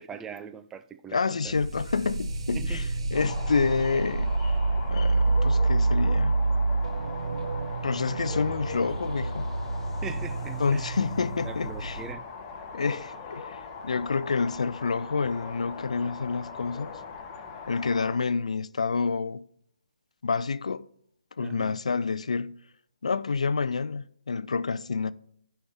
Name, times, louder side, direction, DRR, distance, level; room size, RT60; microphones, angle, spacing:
voice 1, 0.0-1.5 2.5-2.8 10.0-10.9 11.4-12.3 21.4-21.8, right 7 dB, 10° right, 0.3 m, -41 dB
voice 2, 1.1-4.3 4.9-6.4 7.8-9.5 10.6-12.0 12.7-16.9 17.7-19.5 20.2-20.9 21.4-22.6 23.0-25.1, left 4 dB, 70° left, 0.4 m, -28 dB
sound 1, 1.5-12.1, right 3 dB, 55° right, 1.0 m, -28 dB
sound 2, 3.1-18.2, left 5 dB, 25° left, 1.0 m, -40 dB
15.5 x 5.7 x 3.5 m
figure-of-eight pair, 145°, 4 cm